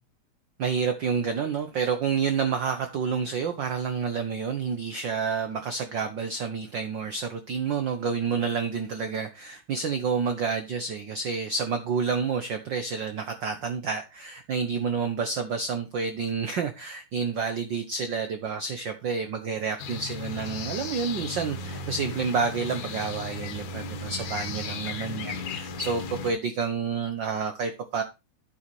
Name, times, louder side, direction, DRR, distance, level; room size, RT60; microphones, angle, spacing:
voice 1, 0.6-28.0, right 5 dB, 85° right, 1.0 m, -29 dB
sound 1, 19.8-26.3, left 4 dB, 80° left, 2.7 m, -35 dB
10.0 x 8.7 x 3.2 m
omnidirectional pair, 3.4 m